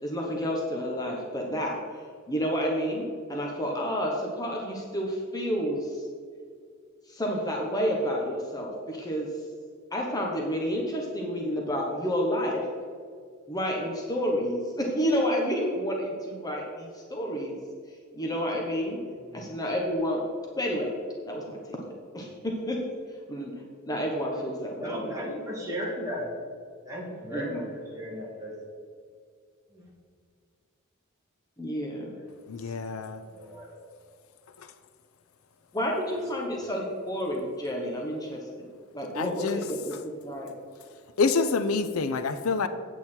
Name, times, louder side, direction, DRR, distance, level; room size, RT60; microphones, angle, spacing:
voice 1, 0.0-1.8 2.3-6.0 7.1-9.3 9.9-12.6 13.5-17.6 18.1-19.0 19.3-20.2 20.6-20.9 21.3-21.8 22.1-22.8 23.3-23.5 23.9-25.2 27.3-27.6 31.6-32.1 35.7-38.7 38.9-40.5, equal, 20° left, 1.0 m, -30 dB
voice 2, 24.8-26.3 26.8-28.5 29.7-29.8 32.6-32.7 33.2-33.8 36.4-36.9, equal, 15° right, 2.5 m, -36 dB
voice 3, 32.5-33.2 39.1-39.6 41.2-42.7, left 4 dB, 80° left, 0.5 m, -27 dB
8.7 x 8.1 x 4.4 m
head